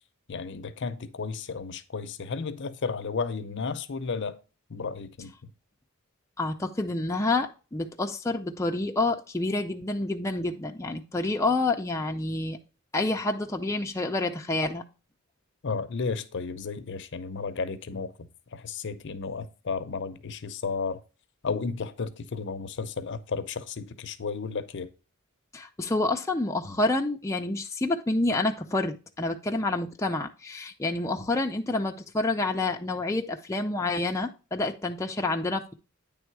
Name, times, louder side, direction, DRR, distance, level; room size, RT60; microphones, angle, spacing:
voice 1, 0.3-4.4 4.7-5.3 15.6-21.0 21.4-24.9, left 4 dB, 55° left, 0.6 m, -33 dB
voice 2, 6.4-12.6 12.9-14.8 25.5-35.7, left 2 dB, 15° left, 0.5 m, -28 dB
9.2 x 3.5 x 4.6 m
head